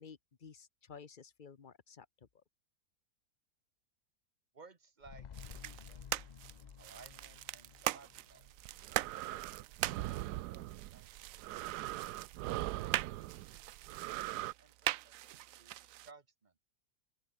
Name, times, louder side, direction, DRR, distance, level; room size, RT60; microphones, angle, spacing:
voice 1, 0.0-2.1, left 6 dB, 35° left, 1.0 m, -53 dB
voice 2, 4.5-5.3 5.5-6.0 6.8-8.5 9.2-11.3 12.9-13.6 13.9-16.5, right 4 dB, 30° right, 1.3 m, -60 dB
sound 1, 5.0-9.5 9.9-10.0, left 8 dB, 65° left, 0.4 m, -54 dB
sound 2, 5.3-16.1, right 14 dB, 70° right, 0.9 m, -42 dB
sound 3, 8.5-14.5, right 16 dB, 90° right, 1.1 m, -41 dB
open air
omnidirectional pair, 1.7 m